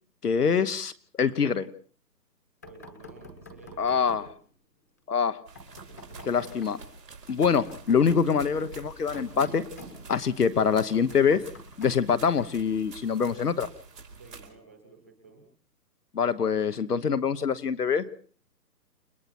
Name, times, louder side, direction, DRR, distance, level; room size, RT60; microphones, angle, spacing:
voice 1, 0.2-0.9 1.2-1.7 3.8-4.3 5.1-5.4 6.3-6.8 7.3-9.6 10.1-11.4 11.8-13.7 16.1-18.1, left 6 dB, 65° left, 11 dB, 1.3 m, -24 dB
Knock, 2.6-4.3 5.6-6.8 7.5-10.4 10.9-12.7, equal, 10° left, 1.2 m, -47 dB
voice 2, 2.6-4.3 5.9-6.6 14.1-15.4, right 4 dB, 10° right, 3 dB, 1.1 m, -53 dB
sound 1, 5.5-14.5, right 4 dB, 90° right, 4.9 m, -47 dB
30.0 x 20.0 x 4.3 m, 0.44 s
hypercardioid pair, 180°, 49 cm